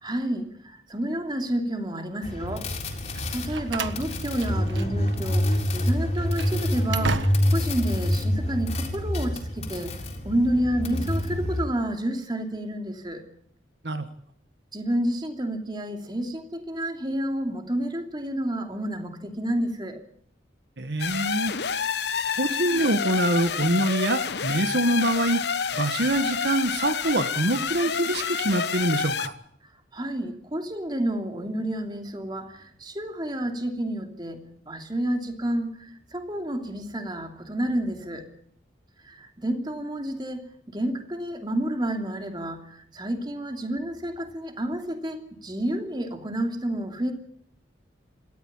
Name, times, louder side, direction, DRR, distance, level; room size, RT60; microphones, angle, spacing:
voice 1, 0.0-2.7 3.1-9.9 10.2-13.2 14.7-20.0 29.9-34.4 34.7-38.2 39.0-47.1, right 1 dB, 25° right, 5 dB, 2.9 m, -30 dB
sound 1, 2.2-11.6, equal, 35° left, 4.0 m, -27 dB
Slam, 3.1-5.2 5.4-5.6 6.1-7.7, right 4 dB, 80° right, 1.5 m, -35 dB
voice 2, 20.8-21.5 22.4-25.4 25.7-29.4, right 1 dB, 65° right, 9 dB, 1.4 m, -25 dB
sound 2, 21.0-29.3, left 6 dB, 65° left, 1.0 m, -28 dB
27.5 x 13.5 x 8.8 m, 0.66 s
head